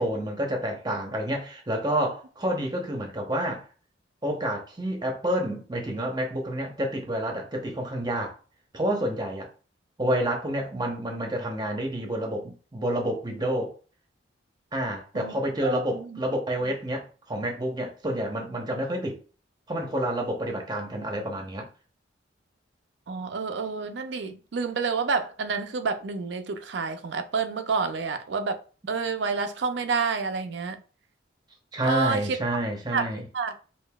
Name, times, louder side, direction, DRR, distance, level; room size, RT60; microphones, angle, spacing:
voice 1, 0.0-3.7 4.2-8.4 8.7-9.5 10.0-13.7 14.7-19.2 19.7-21.7 31.7-33.3, right 1 dB, 20° right, 0.8 m, -29 dB
voice 2, 15.1-16.2 16.6-16.7 23.1-28.6 28.9-30.8 31.8-32.4 32.9-33.1 33.3-33.5, right 5 dB, 65° right, 0.5 m, -29 dB
5.1 x 2.7 x 2.3 m
head